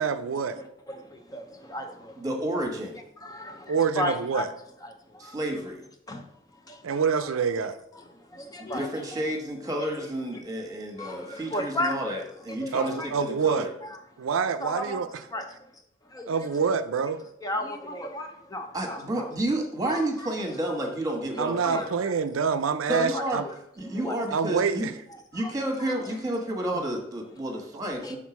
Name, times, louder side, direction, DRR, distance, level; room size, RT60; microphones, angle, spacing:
voice 1, 0.0-0.6 3.7-4.5 6.8-7.8 12.7-13.7 14.2-15.1 16.3-17.2 21.4-23.4 24.3-24.9, right 6 dB, 90° right, 0.5 m, -26 dB
voice 2, 0.6-2.2 3.2-4.5 4.8-5.4 6.1-6.3 6.7-6.8 8.0-8.1 8.3-9.2 9.8-10.1 10.3-10.4 11.0-12.0 12.6-13.1 13.8-14.0 14.6-15.0 15.3-15.7 16.1-16.3 17.4-19.3 19.9-20.3 21.7-21.9 23.1-23.2 23.9-24.2 25.3-25.5 25.8-26.2 28.0-28.2, left 1 dB, 20° left, 0.6 m, -35 dB
voice 3, 2.2-3.0 5.2-5.9 8.6-13.7 18.7-21.9 22.9-23.4 23.8-24.9 25.3-28.2, right 1 dB, 20° right, 1.3 m, -30 dB
6.3 x 3.7 x 6.0 m
head